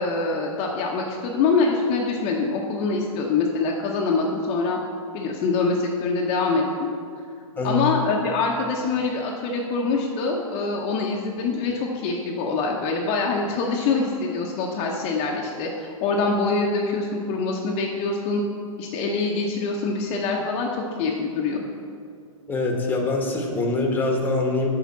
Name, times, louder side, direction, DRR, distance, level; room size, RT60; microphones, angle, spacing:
voice 1, 0.0-4.8 5.1-6.9 7.6-18.4 18.8-20.7 21.0-21.6, left 4 dB, 35° left, -1 dB, 0.9 m, -24 dB
voice 2, 7.6-7.9 22.5-24.7, left 2 dB, 10° left, 1 dB, 1.2 m, -24 dB
7.3 x 5.0 x 7.2 m, 2.3 s
hypercardioid pair, 130°, 18 cm